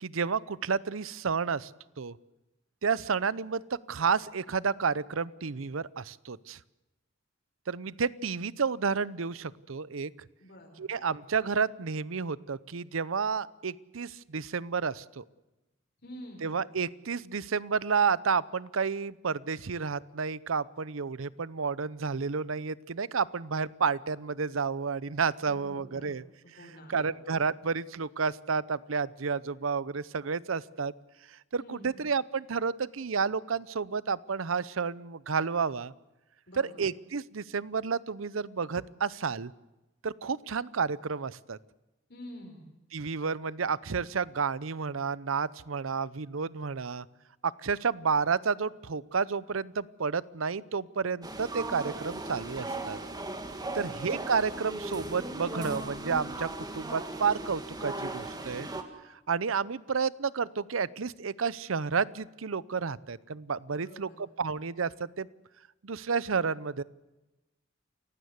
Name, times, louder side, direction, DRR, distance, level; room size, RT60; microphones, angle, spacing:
voice 1, 0.0-1.7 2.0-2.2 2.8-6.6 7.7-10.1 10.8-15.2 16.4-26.2 26.9-30.9 31.5-35.9 36.6-39.5 40.0-41.6 42.9-47.1 47.4-53.0 53.7-58.7 59.1-65.3 65.8-66.8, right 5 dB, 85° right, 19 dB, 0.7 m, -31 dB
voice 2, 10.4-10.8 16.0-16.5 25.4-26.2 26.4-27.2 31.6-32.0 36.5-36.8 42.1-42.7 53.6-54.0 63.7-64.2, equal, 60° left, 0 dB, 4.8 m, -48 dB
sound 1, 51.2-58.8, right 2 dB, 20° right, 2.0 m, -37 dB
29.0 x 16.0 x 8.1 m, 1.0 s
head